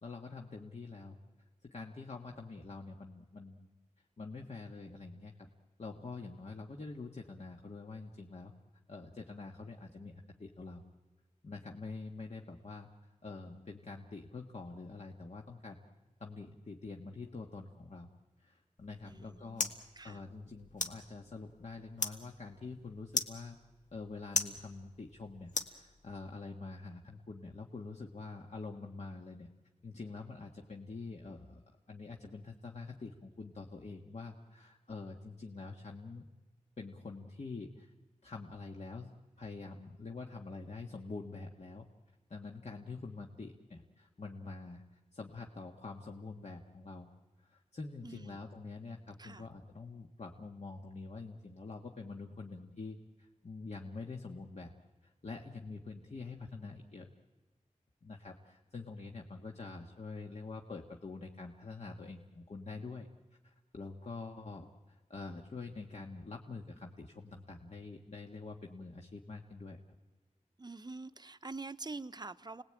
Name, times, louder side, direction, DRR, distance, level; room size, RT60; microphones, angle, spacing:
voice 1, 0.0-1.2 1.6-3.7 4.2-5.5 5.8-8.5 8.9-10.8 11.4-12.9 13.2-15.8 16.2-18.1 18.4-23.6 23.9-29.5 29.8-31.6 31.9-36.3 36.8-37.9 38.2-41.9 42.3-47.1 47.4-54.7 55.0-57.1 58.0-63.1 63.4-64.7 65.1-69.8, left 3 dB, 60° left, 1 dB, 1.7 m, -46 dB
sound 1, 18.8-26.3, left 3 dB, 75° left, 1.8 m, -41 dB
voice 2, 19.0-20.2 48.0-48.4 49.2-49.5 70.6-72.6, right 3 dB, 35° right, 12 dB, 0.8 m, -46 dB
30.0 x 20.0 x 8.9 m, 1.2 s
wide cardioid pair, 85°, 13 cm